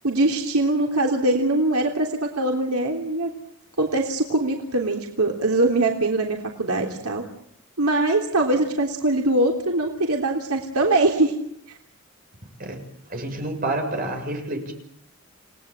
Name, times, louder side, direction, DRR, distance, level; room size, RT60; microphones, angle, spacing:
voice 1, 0.0-3.3 3.8-7.2 7.8-11.3, right 2 dB, 85° right, 1 dB, 3.4 m, -22 dB
voice 2, 13.1-14.7, right 2 dB, 40° right, 4 dB, 6.8 m, -28 dB
30.0 x 19.0 x 8.9 m, 0.72 s
head